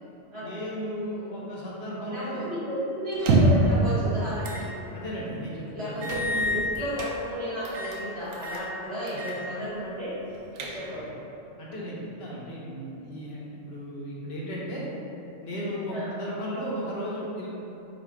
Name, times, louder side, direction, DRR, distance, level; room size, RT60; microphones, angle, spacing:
voice 1, 0.4-2.5 4.9-6.4 9.1-9.3 10.9-11.0 11.6-14.9 15.4-17.5, equal, 60° left, -6 dB, 0.9 m, -35 dB
voice 2, 2.1-4.7 5.7-10.1 10.7-11.2 15.9-16.1, equal, 25° right, -15 dB, 1.1 m, -33 dB
sound 1, 3.1-3.7 4.4-4.7 5.1-5.2 6.0-7.1 7.6-8.0 8.3-8.7 9.1-9.4 9.7-9.8 10.3-11.1, right 1 dB, 85° right, 1.0 m, -26 dB
4.1 x 2.4 x 4.4 m, 2.9 s
omnidirectional pair, 1.3 m